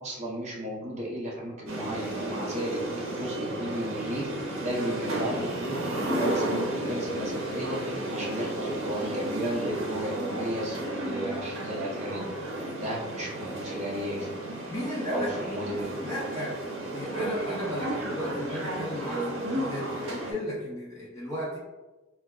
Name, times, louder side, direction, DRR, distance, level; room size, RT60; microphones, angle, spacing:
voice 1, 0.0-2.8 3.1-4.3 4.6-7.8 8.1-12.3 12.7-14.3 15.1-15.9, equal, 35° right, -3 dB, 0.6 m, -34 dB
sound 1, 1.7-20.3, right 1 dB, 80° right, 0.7 m, -33 dB
voice 2, 14.7-15.3 15.7-21.6, equal, 15° left, -7 dB, 0.5 m, -35 dB
3.8 x 2.3 x 2.2 m, 1.2 s
head